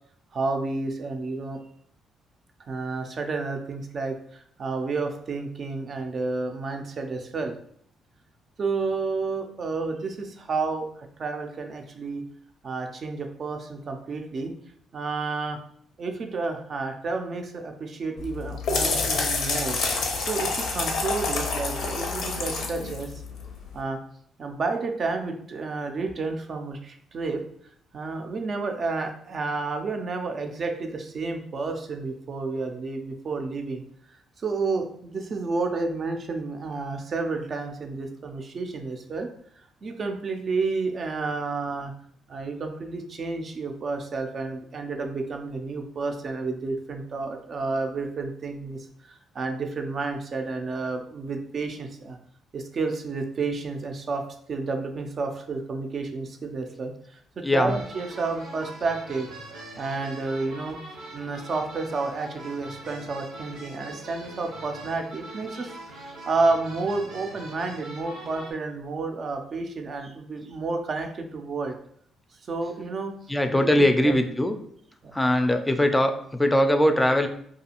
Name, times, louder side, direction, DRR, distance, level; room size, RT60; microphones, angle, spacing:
voice 1, 0.3-1.6 2.7-7.5 8.6-12.2 12.6-14.5 14.9-15.6 16.0-19.8 20.3-23.2 23.7-24.0 24.4-27.4 27.9-33.8 34.1-39.3 39.8-41.9 42.3-52.2 52.5-59.3 59.8-60.8 61.1-71.8 72.5-73.1 73.5-74.1 75.0-75.2, right 3 dB, 50° right, 5 dB, 0.4 m, -30 dB
sound 1, 18.2-23.8, left 4 dB, 75° left, 0.5 m, -28 dB
sound 2, 57.6-68.5, right 1 dB, 85° right, 0.7 m, -42 dB
voice 2, 73.3-74.5 75.1-77.3, left 1 dB, 15° left, 6 dB, 0.4 m, -21 dB
2.4 x 2.3 x 2.8 m, 0.64 s
supercardioid pair, 55°, 0 cm